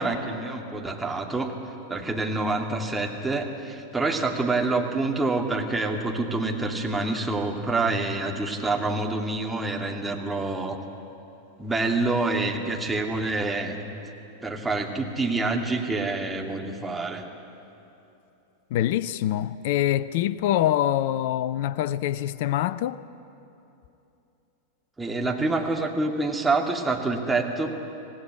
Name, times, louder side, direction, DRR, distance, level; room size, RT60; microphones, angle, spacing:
voice 1, 0.0-1.5 1.9-10.8 11.6-13.8 14.4-17.3 25.0-27.7, right 3 dB, 10° right, 2.6 m, -27 dB
voice 2, 18.7-23.0, left 12 dB, 50° left, 0.7 m, -25 dB
25.5 x 18.0 x 9.9 m
figure-of-eight pair, 90°, 0 cm